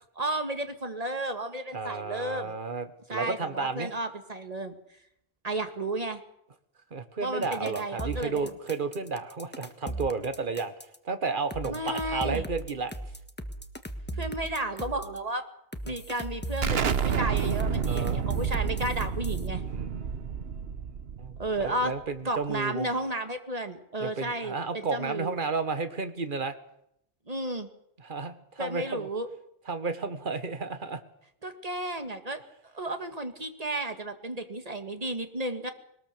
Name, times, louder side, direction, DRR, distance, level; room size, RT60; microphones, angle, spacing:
voice 1, 0.2-2.5 3.1-4.7 5.4-6.2 7.2-8.5 11.7-12.5 14.2-15.4 15.8-19.6 21.4-21.9 22.3-25.3 27.3-27.7 28.6-29.3 31.4-32.4 32.7-35.7, right 1 dB, 35° right, 7 dB, 2.0 m, -33 dB
voice 2, 1.7-3.9 6.9-10.7 11.0-12.9 17.9-18.2 19.5-20.1 21.2-21.3 21.6-22.9 24.0-26.5 28.0-29.1 29.7-31.0, right 4 dB, 55° right, 10 dB, 1.7 m, -32 dB
sound 1, 7.4-11.0 11.5-15.2 15.7-19.5, right 1 dB, 10° left, 1.4 m, -38 dB
Explosion, 16.6-22.1, right 7 dB, 70° right, 1.2 m, -29 dB
21.0 x 20.0 x 6.8 m, 0.76 s
omnidirectional pair, 1.1 m